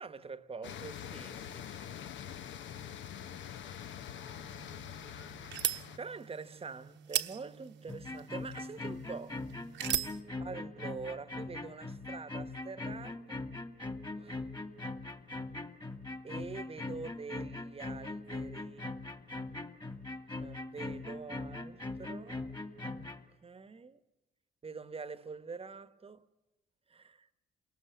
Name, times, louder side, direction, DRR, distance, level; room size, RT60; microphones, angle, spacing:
voice 1, 0.0-2.1 6.0-9.4 10.4-13.5 14.1-14.5 16.2-18.9 20.3-22.5 22.8-23.2 23.4-24.0 24.6-26.3 26.9-27.3, right 4 dB, 30° right, 1.1 m, -45 dB
sound 1, 0.6-6.0, left 9 dB, 70° left, 0.9 m, -44 dB
sound 2, 4.3-10.2, right 10 dB, 65° right, 1.1 m, -39 dB
sound 3, 7.9-23.2, left 2 dB, 20° left, 2.2 m, -41 dB
27.5 x 19.0 x 8.4 m
cardioid pair, 90°, 20 cm